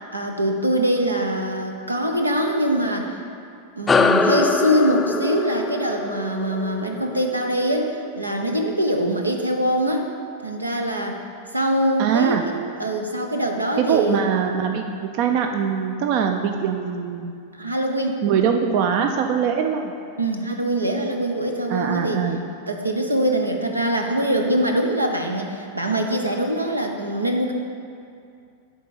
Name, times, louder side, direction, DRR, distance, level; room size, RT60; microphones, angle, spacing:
voice 1, 0.1-3.2 3.8-10.1 10.4-11.2 11.5-12.5 12.8-14.2 17.5-18.2 20.2-22.2 22.7-27.5, right 1 dB, 85° right, 3 dB, 0.7 m, -23 dB
sound 1, 3.9-8.7, left 4 dB, 15° left, 0.4 m, -24 dB
voice 2, 12.0-12.4 13.8-17.3 18.2-19.9 21.7-22.4, right 7 dB, 45° right, 5 dB, 0.4 m, -22 dB
9.1 x 3.7 x 7.0 m, 2.4 s
figure-of-eight pair, 90°, 0 cm